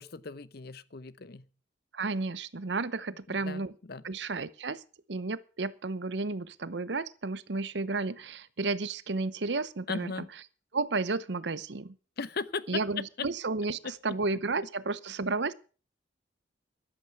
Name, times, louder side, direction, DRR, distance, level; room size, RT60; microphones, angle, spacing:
voice 1, 0.0-1.5 3.3-3.6 3.9-4.0 9.9-10.3 12.2-12.8 13.8-13.9, left 4 dB, 60° left, 16 dB, 0.8 m, -37 dB
voice 2, 1.9-3.7 4.0-4.8 5.1-10.3 10.7-12.0 12.7-15.5, right 3 dB, 70° right, 16 dB, 0.8 m, -32 dB
14.0 x 11.0 x 5.8 m, 0.38 s
head